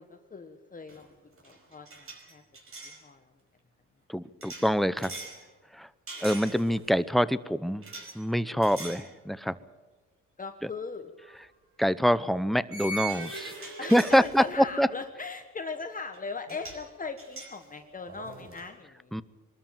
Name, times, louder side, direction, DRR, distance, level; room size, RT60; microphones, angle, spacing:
voice 1, 0.0-2.4 2.8-3.3 10.4-11.1 13.8-19.2, left 4 dB, 25° left, 6 dB, 1.4 m, -40 dB
sound 1, 0.9-1.1 1.4-3.0 4.4-5.4 6.1-6.9 7.8-8.2 8.6-9.1 9.5-9.7 11.2-11.3 12.7-14.8 16.1-16.2 16.5-16.9 17.2-18.7, right 3 dB, 45° right, 5.1 m, -41 dB
voice 2, 4.1-5.2 5.7-5.9 6.2-7.8 8.1-9.6 11.8-14.9 19.1-19.2, equal, ahead, 15 dB, 0.8 m, -25 dB
22.5 x 13.0 x 9.2 m, 1.2 s
cardioid pair, 90°, 30 cm